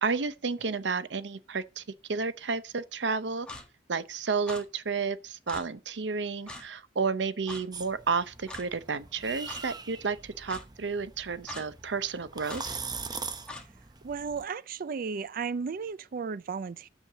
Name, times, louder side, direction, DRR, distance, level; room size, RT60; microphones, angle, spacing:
voice 1, 0.0-1.8 2.1-3.5 3.9-12.8, right 5 dB, 80° right, 0.7 m, -31 dB
Clock, 3.5-3.6 4.5-4.6 5.5-5.6 6.5-6.6 7.5-7.6 8.5-8.7 9.5-9.6 10.5-10.6 11.5-11.7 12.5-12.6 13.5-13.6, left 2 dB, 5° left, 1.7 m, -41 dB
sound 1, 7.7-14.4, right 4 dB, 25° right, 0.8 m, -42 dB
voice 2, 14.0-16.9, right 5 dB, 55° right, 0.4 m, -34 dB
7.0 x 6.5 x 6.6 m
head